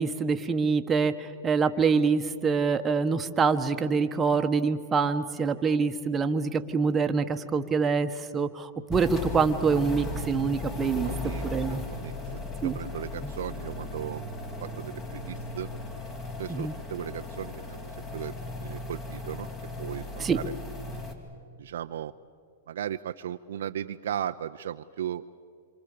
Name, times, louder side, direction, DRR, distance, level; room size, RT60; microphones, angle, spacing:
voice 1, 0.0-11.1 11.5-11.8 12.6-12.8 13.2-13.3 16.5-16.7 20.2-20.4, right 5 dB, 15° right, 7 dB, 1.4 m, -25 dB
sound 1, 8.9-21.1, left 2 dB, 25° left, 3.6 m, -37 dB
voice 2, 11.0-14.3 14.6-15.7 16.4-19.5 19.8-20.5 21.6-22.1 22.7-25.3, right 10 dB, 75° right, 7 dB, 0.7 m, -37 dB
27.5 x 26.5 x 6.9 m, 2.3 s
hypercardioid pair, 135°, 0 cm